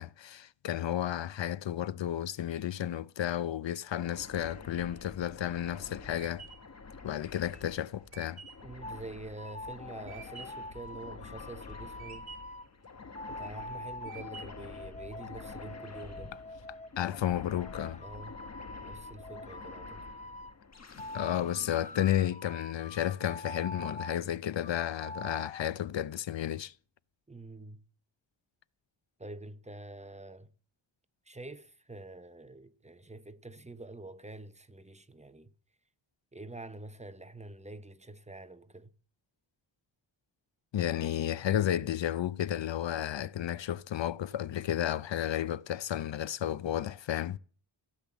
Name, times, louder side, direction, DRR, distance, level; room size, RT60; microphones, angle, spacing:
voice 1, 0.0-6.5 7.0-8.4 17.0-18.0 21.1-26.7 40.7-47.4, left 11 dB, 70° left, 0.7 m, -32 dB
sound 1, 4.0-22.8, left 4 dB, 35° left, 1.3 m, -49 dB
sound 2, 5.4-10.7 11.2-11.7 12.0-12.7 13.2-13.6 14.1-14.8, right 6 dB, 55° right, 2.8 m, -50 dB
voice 2, 8.6-12.3 13.3-16.4 18.0-18.4 18.8-20.1 27.3-27.8 29.2-30.5 31.3-35.5 36.3-38.9, right 2 dB, 15° right, 0.8 m, -46 dB
sound 3, 8.8-9.0 9.4-12.7 13.1-16.9 17.5-20.5 21.0-24.2 24.6-25.6, left 2 dB, 15° left, 0.7 m, -45 dB
16.0 x 10.0 x 7.1 m
wide cardioid pair, 160°, 46 cm